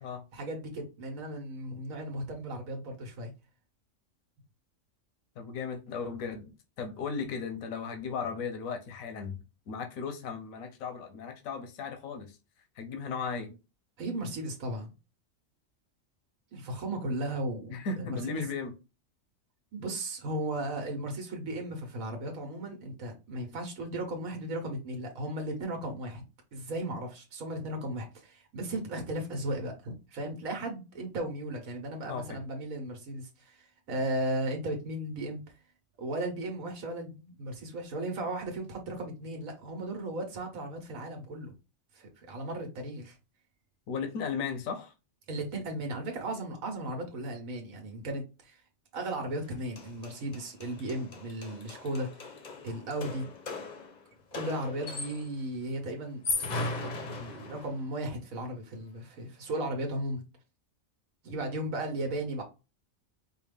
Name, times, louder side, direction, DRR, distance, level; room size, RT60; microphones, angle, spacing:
voice 1, 0.3-3.3 14.0-14.9 16.5-18.5 19.7-26.2 26.5-35.4 36.0-41.5 41.9-43.2 45.3-48.6 48.9-52.3 52.6-53.3 54.3-56.2 56.8-60.2 61.2-62.4, right 1 dB, 85° right, 1.4 m, -36 dB
voice 2, 5.4-6.5 6.8-9.4 9.7-12.4 12.8-13.6 17.7-18.7 32.1-32.4 43.9-44.9, left 5 dB, 85° left, 1.2 m, -36 dB
sound 1, 49.4-49.5 49.8-55.4 56.1-57.9, left 3 dB, 40° left, 0.7 m, -38 dB
4.6 x 2.4 x 3.3 m
omnidirectional pair, 1.4 m